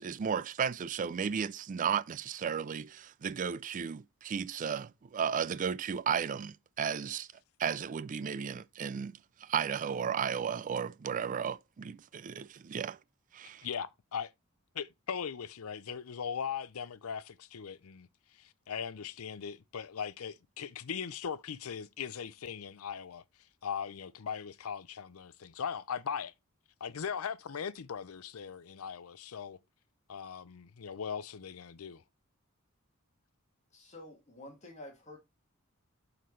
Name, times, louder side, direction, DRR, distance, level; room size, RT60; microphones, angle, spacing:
voice 1, 0.0-7.3 7.6-13.0 13.3-13.7, right 7 dB, 40° right, 0.3 m, -34 dB
voice 2, 13.6-14.3 14.7-18.1 18.4-23.2 23.6-26.3 26.8-29.6 30.1-32.0, left 7 dB, 90° left, 0.6 m, -39 dB
voice 3, 33.7-35.2, left 1 dB, 35° left, 1.9 m, -49 dB
11.0 x 4.0 x 3.1 m
head